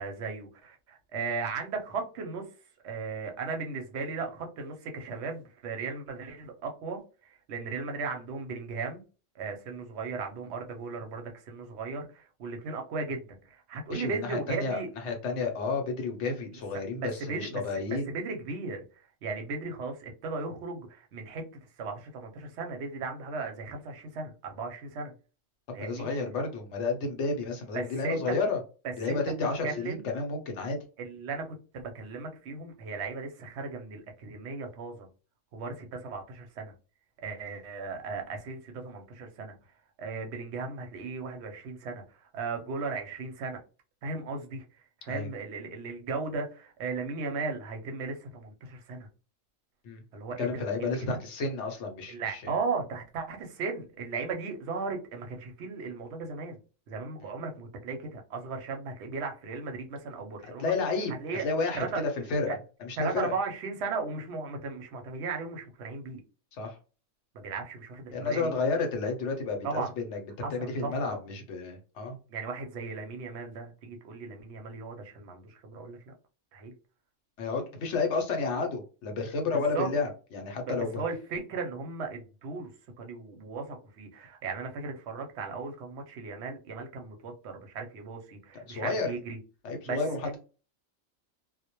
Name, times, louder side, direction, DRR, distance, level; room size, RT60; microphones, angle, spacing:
voice 1, 0.0-2.5 2.8-9.0 9.3-14.9 17.0-21.4 21.8-25.1 25.7-26.1 27.7-28.3 29.1-29.2 29.6-30.1 31.0-31.5 31.7-35.1 35.5-36.7 37.2-39.6 40.0-43.6 44.0-49.1 50.1-51.2 52.1-56.6 56.9-60.7 61.2-61.4 61.7-62.0 62.4-62.6 63.0-66.2 67.3-68.5 69.6-69.9 70.4-71.2 72.3-76.1 76.5-76.7 79.5-79.9 80.7-82.7 83.0-89.4 89.8-90.3, right 4 dB, 65° right, 0.7 m, -36 dB
voice 2, 13.9-18.1 25.8-28.6 29.0-30.8 45.1-45.3 49.8-50.0 50.4-52.5 60.4-61.1 61.4-62.5 62.8-63.3 66.5-66.8 68.1-70.2 70.5-72.2 77.4-81.0 88.7-89.1 89.6-90.4, left 4 dB, 65° left, 0.8 m, -31 dB
2.1 x 2.1 x 2.8 m
omnidirectional pair, 1.4 m